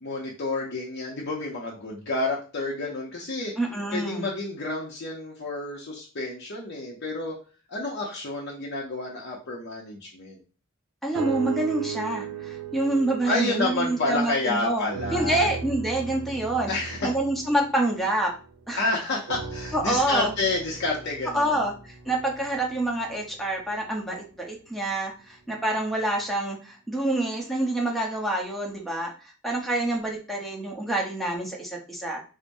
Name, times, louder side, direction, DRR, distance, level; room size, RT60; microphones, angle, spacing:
voice 1, 0.0-3.5 3.9-7.4 7.7-10.4 13.2-15.5 16.7-17.1 18.8-21.6, left 2 dB, 60° left, -3 dB, 0.7 m, -29 dB
voice 2, 3.6-4.3 11.0-16.7 17.0-18.3 18.7-18.8 19.7-20.3 21.3-32.2, right 1 dB, ahead, -1 dB, 0.8 m, -27 dB
sound 1, 11.1-14.5 14.9-18.6 19.3-23.5 24.1-24.2, right 6 dB, 80° right, 0.5 m, -37 dB
4.5 x 2.1 x 2.6 m, 0.36 s
head